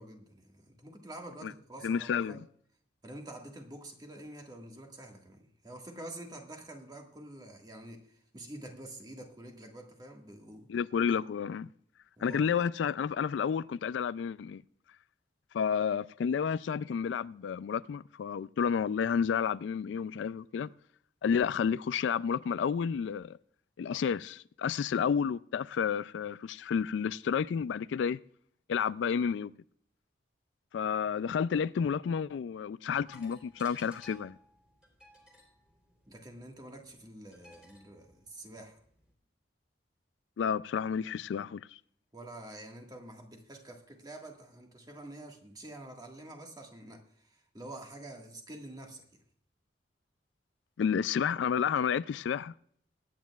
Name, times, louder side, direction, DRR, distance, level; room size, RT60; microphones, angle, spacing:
voice 1, 0.0-2.4 3.0-10.7 12.2-12.5 36.1-38.8 42.1-49.2, right 1 dB, 20° right, 1.6 m, -47 dB
voice 2, 1.8-2.4 10.7-11.7 12.2-14.6 15.5-20.7 21.2-23.4 23.8-28.2 28.7-29.5 30.7-34.4 40.4-41.7 50.8-52.5, left 7 dB, 75° left, 0.3 m, -31 dB
sound 1, 33.1-39.1, equal, 5° right, 3.4 m, -60 dB
22.5 x 9.4 x 2.3 m
head